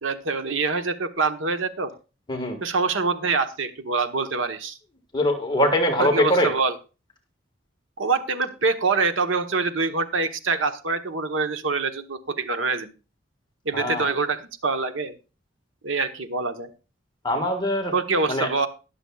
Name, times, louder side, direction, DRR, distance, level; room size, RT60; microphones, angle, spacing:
voice 1, 0.0-1.9 2.6-4.8 6.0-6.7 8.0-12.9 13.6-15.2 15.8-16.7 17.9-18.7, right 4 dB, 90° right, 8 dB, 1.1 m, -25 dB
voice 2, 5.1-6.5 13.7-14.1 17.2-17.9 18.3-18.5, left 1 dB, 25° left, 3 dB, 1.6 m, -22 dB
20.5 x 7.0 x 2.3 m, 0.32 s
head